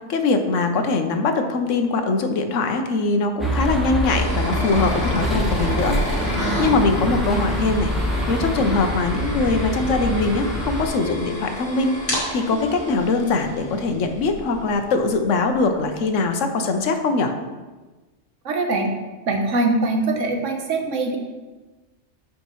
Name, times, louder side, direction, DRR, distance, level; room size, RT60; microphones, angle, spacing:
voice 1, 0.1-6.0 6.6-7.9 8.3-12.0 12.3-17.3, left 3 dB, 85° left, 6 dB, 1.2 m, -22 dB
sound 1, 3.4-10.9, equal, ahead, 1.0 m, -25 dB
sound 2, 4.1-14.9, equal, 50° left, 2.3 m, -31 dB
voice 2, 18.4-18.9 19.3-21.2, right 2 dB, 85° right, 3 dB, 1.4 m, -22 dB
12.0 x 5.1 x 3.1 m, 1.2 s
omnidirectional pair, 1.3 m